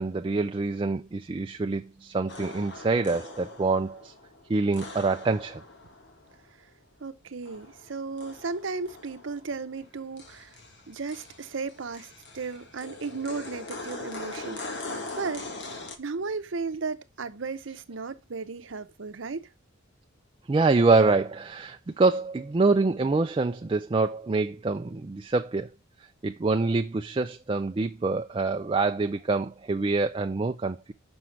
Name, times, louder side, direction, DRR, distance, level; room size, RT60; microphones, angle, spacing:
voice 1, 0.0-4.1 4.5-5.6 20.5-25.7 26.2-30.9, right 3 dB, 25° right, 0.3 m, -25 dB
sound 1, 2.3-6.5 7.4-9.9 10.2-16.0, left 2 dB, 55° left, 1.5 m, -41 dB
voice 2, 7.0-10.6 10.9-15.5 16.0-19.5, right 4 dB, 70° right, 0.7 m, -35 dB
6.3 x 5.8 x 4.5 m
head